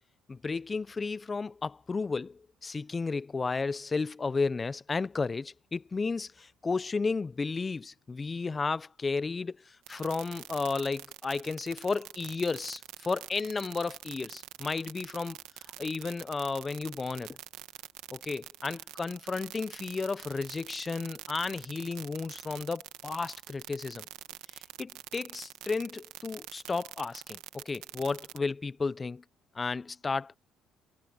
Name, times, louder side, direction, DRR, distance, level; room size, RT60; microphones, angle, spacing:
voice 1, 0.3-15.4 15.8-17.4 18.1-24.1 24.5-29.2 29.5-30.4, left 4 dB, 25° left, 0.5 m, -33 dB
sound 1, 9.9-28.4, right 16 dB, 90° right, 1.6 m, -45 dB
cardioid pair, 100°, 0 cm